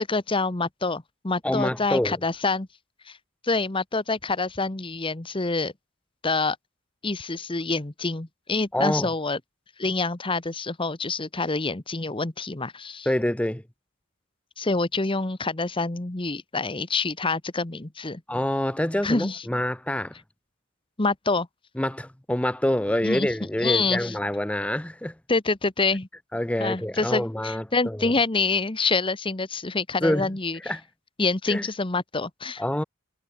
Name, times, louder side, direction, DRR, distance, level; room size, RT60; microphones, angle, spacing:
voice 1, 0.0-2.7 3.1-3.2 3.4-5.7 6.2-6.6 7.0-9.4 9.8-13.1 14.6-18.2 19.0-19.4 21.0-21.5 23.0-23.3 23.6-24.1 25.3-26.1 26.6-30.6 31.2-32.6, left 3 dB, 25° left, 1.1 m, -26 dB
voice 2, 1.4-2.2 8.7-9.1 13.1-13.6 18.3-20.1 21.8-25.2 26.3-28.1 30.0-30.3 30.6-30.8 31.5-31.7 32.6-32.8, left 1 dB, 5° left, 0.6 m, -26 dB
head